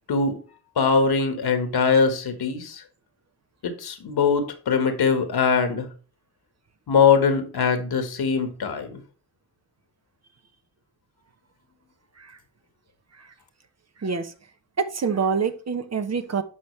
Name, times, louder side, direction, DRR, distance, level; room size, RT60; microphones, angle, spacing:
voice 1, 0.1-0.4 0.8-2.8 3.6-5.9 6.9-9.0, left 5 dB, 55° left, 1.6 m, -22 dB
voice 2, 14.0-14.3 14.8-16.4, right 5 dB, 35° right, 1.0 m, -26 dB
11.5 x 4.3 x 3.2 m
supercardioid pair, 55°, 44 cm